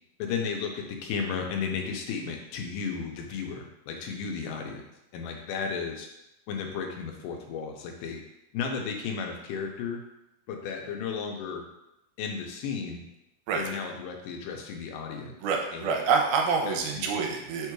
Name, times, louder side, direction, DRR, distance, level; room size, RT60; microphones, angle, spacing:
voice 1, 0.2-4.9 5.1-6.1 6.5-8.2 8.5-10.0 10.5-11.7 12.2-13.1 13.5-15.3 15.7-16.0 16.7-17.4, left 6 dB, 90° left, 2 dB, 2.3 m, -34 dB
voice 2, 15.4-17.7, right 5 dB, 85° right, 1 dB, 2.1 m, -27 dB
5.1 x 2.2 x 4.6 m, 0.88 s
omnidirectional pair, 3.7 m